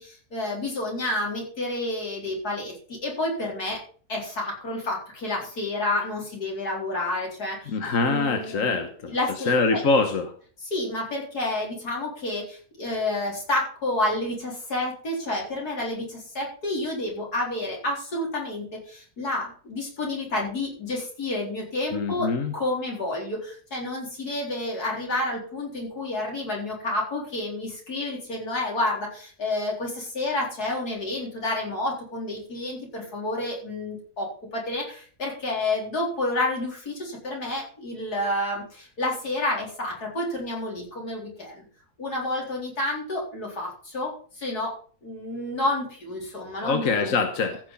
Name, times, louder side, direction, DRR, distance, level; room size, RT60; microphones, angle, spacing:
voice 1, 0.0-3.8 4.1-7.8 8.0-8.8 9.1-9.8 10.6-41.7 42.0-44.7 45.0-47.2, left 2 dB, 80° left, -2 dB, 4.6 m, -30 dB
voice 2, 7.7-9.1 9.5-10.3 21.9-22.5 46.6-47.6, left 4 dB, 60° left, 6 dB, 1.5 m, -24 dB
15.0 x 6.4 x 5.4 m, 0.44 s
omnidirectional pair, 1.6 m